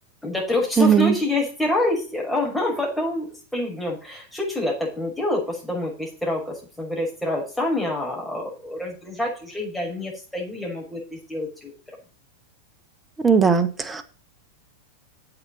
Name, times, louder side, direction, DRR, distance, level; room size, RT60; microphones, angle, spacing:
voice 1, 0.2-3.3 3.5-11.7, left 1 dB, ahead, 5.9 m, -27 dB
voice 2, 0.8-1.1 13.2-14.0, right 6 dB, 15° right, 1.3 m, -18 dB
7.8 x 6.9 x 7.1 m
figure-of-eight pair, 90°, 0 cm